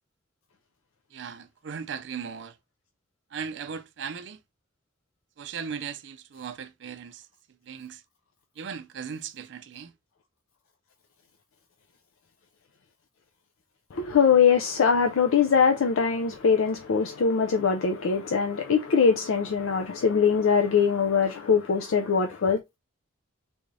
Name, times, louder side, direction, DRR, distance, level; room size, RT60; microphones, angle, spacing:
voice 1, 1.1-2.5 3.3-4.4 5.4-7.2 7.7-8.0 8.6-9.9, right 6 dB, 60° right, 0.4 m, -37 dB
voice 2, 13.9-22.6, left 6 dB, 85° left, 0.4 m, -22 dB
3.4 x 2.6 x 3.1 m
head